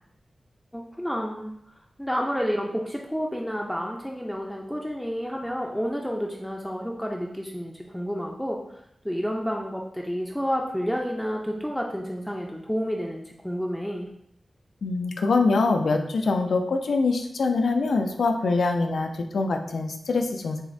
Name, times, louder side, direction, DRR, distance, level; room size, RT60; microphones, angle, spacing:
voice 1, 0.7-1.5 2.0-8.6 9.0-14.1, equal, ahead, -1 dB, 0.4 m, -30 dB
voice 2, 14.8-20.6, left 3 dB, 90° left, 5 dB, 0.4 m, -24 dB
6.0 x 2.1 x 2.6 m, 0.73 s
wide cardioid pair, 110°, 0 cm